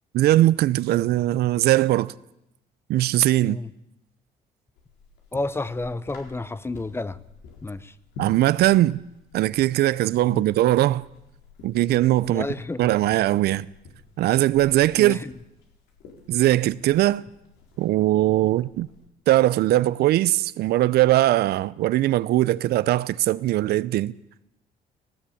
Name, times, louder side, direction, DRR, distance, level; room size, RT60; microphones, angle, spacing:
voice 1, 0.1-2.1 2.9-3.6 8.2-9.0 9.3-11.0 11.6-12.5 12.8-13.7 14.2-15.2 16.3-17.2 17.8-18.9 19.3-24.1, right 15 dB, 70° right, 0.6 m, -20 dB
sound 1, 4.8-19.1, left 2 dB, 85° left, 4.3 m, -48 dB
voice 2, 5.3-7.2 7.6-7.9 10.3-10.4 12.2-12.8 15.0-15.3, left 2 dB, 15° left, 0.7 m, -31 dB
18.0 x 17.5 x 8.6 m
cardioid pair, 110°, 17 cm